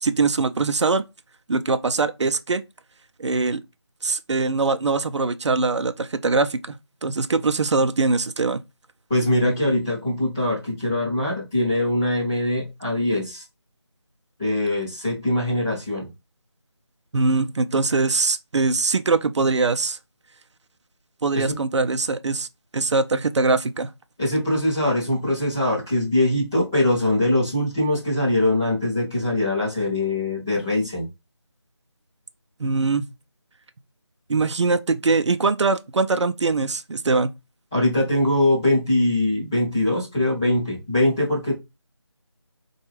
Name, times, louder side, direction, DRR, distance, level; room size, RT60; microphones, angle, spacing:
voice 1, 0.0-1.0 1.5-2.6 3.2-3.6 4.0-6.8 7.0-8.6 17.1-20.0 21.2-22.5 22.7-23.9 32.6-33.1 34.3-37.3, right 3 dB, 75° right, 0.4 m, -22 dB
voice 2, 9.1-13.4 14.4-16.1 21.3-21.5 24.2-31.1 37.7-41.5, left 1 dB, 5° left, 0.6 m, -22 dB
4.3 x 2.3 x 3.1 m
figure-of-eight pair, 170°, 15 cm